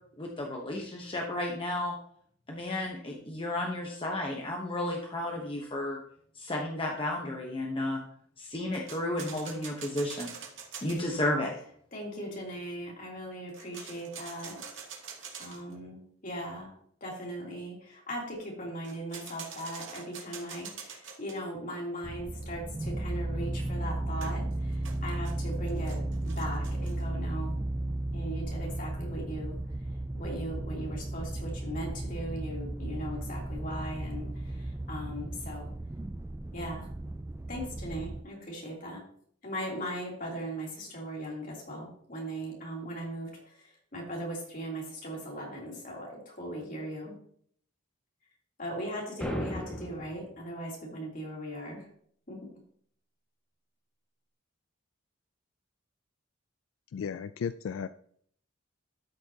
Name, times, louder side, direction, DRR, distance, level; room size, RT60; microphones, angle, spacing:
voice 1, 0.2-1.9 2.5-6.0 6.3-8.0 8.4-10.3 10.8-11.5, left 1 dB, 25° left, 0 dB, 1.0 m, -32 dB
sound 1, 8.7-11.0 13.5-15.8 18.8-21.4 24.2-27.0, right 6 dB, 65° right, 2.2 m, -45 dB
voice 2, 11.9-14.6 15.4-16.7 17.0-24.7 25.0-26.0 26.3-27.6 28.1-29.5 30.1-34.3 34.9-35.7 36.5-36.8 37.5-39.0 39.4-43.3 43.9-47.1 48.6-51.8 52.3-52.4, right 1 dB, 45° left, -3 dB, 3.2 m, -38 dB
sound 2, 22.0-38.2, right 1 dB, 15° right, 0.3 m, -35 dB
sound 3, 49.2-50.2, equal, 5° left, 1.7 m, -35 dB
voice 3, 56.9-57.9, left 6 dB, 80° left, 13 dB, 0.3 m, -34 dB
13.0 x 6.4 x 2.9 m, 0.62 s
head